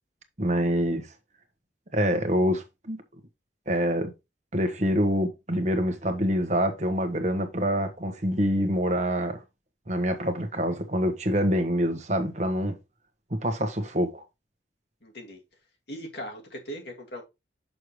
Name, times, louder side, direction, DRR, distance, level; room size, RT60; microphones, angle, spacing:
voice 1, 0.4-1.1 1.9-3.0 3.7-4.1 4.5-9.4 9.9-12.7 13.3-14.2, equal, 40° right, 1.2 m, -26 dB
voice 2, 15.0-15.4 15.9-17.2, equal, 65° left, 2.2 m, -39 dB
6.9 x 6.4 x 3.2 m
head